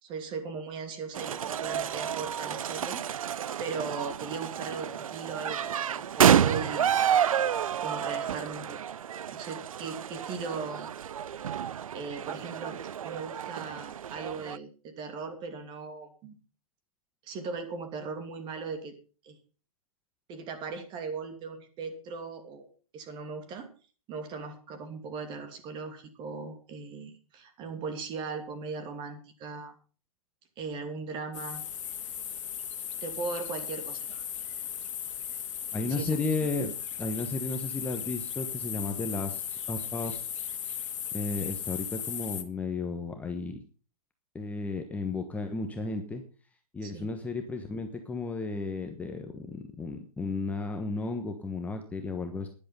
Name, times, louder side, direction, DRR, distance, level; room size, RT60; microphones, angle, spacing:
voice 1, 0.0-3.0 3.6-7.0 7.8-8.8 9.3-10.9 11.9-16.4 17.2-18.9 19.2-19.4 20.3-22.7 22.9-23.7 24.1-29.7 30.6-31.6 33.0-34.2 35.9-36.2 46.8-47.1, right 4 dB, 25° right, 7 dB, 2.8 m, -38 dB
sound 1, 1.1-14.6, right 9 dB, 70° right, 0.5 m, -29 dB
sound 2, 31.3-42.4, left 9 dB, 55° left, 2.0 m, -37 dB
voice 2, 35.7-36.7 37.0-40.2 41.1-43.6 44.3-46.2 46.7-52.5, left 3 dB, 10° left, 5 dB, 1.2 m, -33 dB
12.0 x 11.0 x 5.6 m, 0.39 s
hypercardioid pair, 130°, 19 cm